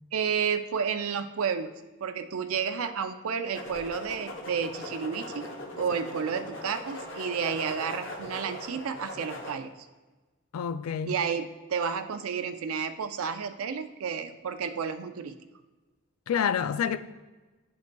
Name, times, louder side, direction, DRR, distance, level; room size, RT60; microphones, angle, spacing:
voice 1, 0.1-1.7 2.0-9.7 11.1-15.3, right 6 dB, 85° right, 0.4 m, -31 dB
sound 1, 3.5-9.5, left 1 dB, 60° left, 0.9 m, -40 dB
voice 2, 10.5-11.1 16.3-17.0, left 7 dB, 90° left, 0.4 m, -28 dB
10.5 x 5.0 x 2.3 m
head